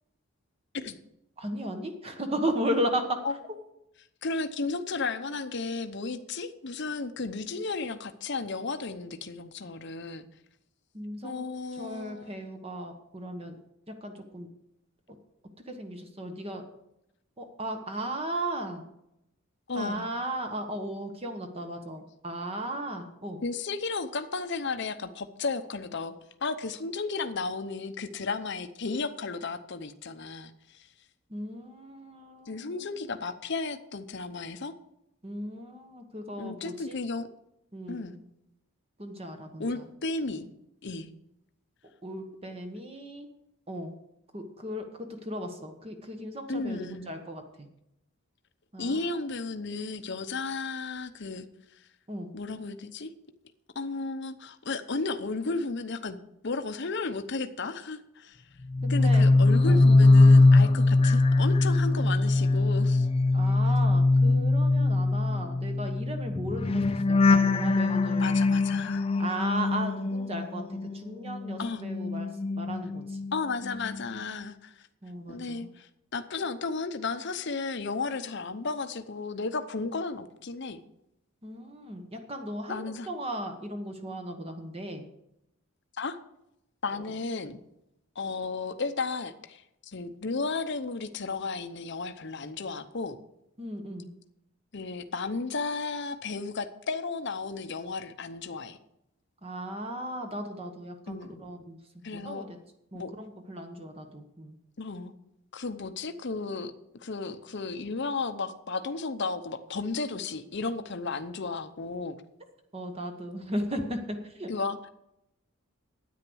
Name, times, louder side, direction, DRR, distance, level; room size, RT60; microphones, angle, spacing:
voice 1, 1.4-3.2 10.9-11.4 11.7-13.6 13.9-14.5 15.7-16.6 17.4-18.8 19.7-23.4 31.3-32.9 35.2-37.0 37.7-38.2 39.0-39.9 42.0-43.3 43.7-43.9 44.3-47.7 48.7-49.1 52.1-52.3 58.8-59.3 59.6-59.9 63.3-66.8 67.1-68.4 69.2-72.3 72.6-73.2 75.0-75.7 81.4-85.1 93.6-94.1 99.4-101.8 102.1-102.6 102.9-104.6 112.7-114.5, right 1 dB, 30° right, 5 dB, 1.2 m, -36 dB
voice 2, 4.2-10.3 11.2-12.4 19.7-20.1 23.4-26.2 26.4-30.9 32.5-34.7 36.4-37.3 37.9-38.2 39.6-40.5 40.8-41.1 46.5-47.2 48.8-51.5 52.3-53.1 53.7-56.2 56.4-58.4 58.9-63.1 68.2-69.1 71.6-71.8 73.3-74.8 75.3-80.8 82.7-83.1 86.0-86.2 86.8-87.6 88.2-93.2 94.7-98.8 101.1-101.4 102.0-102.5 102.9-103.1 104.8-105.1 105.5-106.7 107.0-112.2 114.5-114.9, left 3 dB, 55° left, 9 dB, 0.8 m, -34 dB
sound 1, 58.7-71.0 71.3-73.3 73.6-74.0, left 2 dB, 25° left, 0.4 m, -22 dB
9.9 x 9.3 x 6.3 m, 0.83 s
head